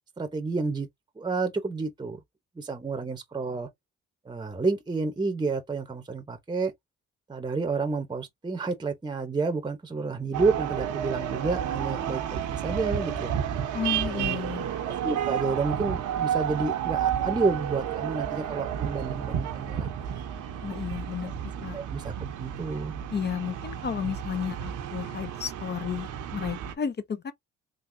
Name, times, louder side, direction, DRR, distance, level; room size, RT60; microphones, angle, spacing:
voice 1, 0.2-0.9 1.2-2.2 2.6-3.7 4.2-6.7 7.3-13.3 14.1-14.4 15.0-20.3 21.2-21.3 21.7-22.9, right 4 dB, 15° right, 0.8 m, -30 dB
sound 1, 10.3-26.7, right 9 dB, 80° right, 0.9 m, -31 dB
voice 2, 13.7-14.6 20.6-21.3 21.6-21.8 23.1-27.3, left 7 dB, 35° left, 0.6 m, -32 dB
3.7 x 2.7 x 2.6 m
cardioid pair, 90°, 30 cm